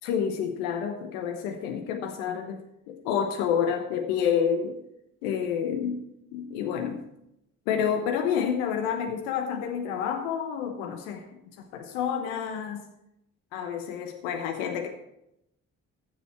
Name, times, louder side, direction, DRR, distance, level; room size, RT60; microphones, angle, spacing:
voice 1, 0.0-2.6 2.9-4.8 5.2-6.0 6.3-7.0 7.7-11.3 11.7-12.8 13.5-14.9, left 8 dB, 80° left, 5 dB, 1.1 m, -29 dB
15.0 x 7.1 x 4.3 m, 0.83 s
hypercardioid pair, 45°, 39 cm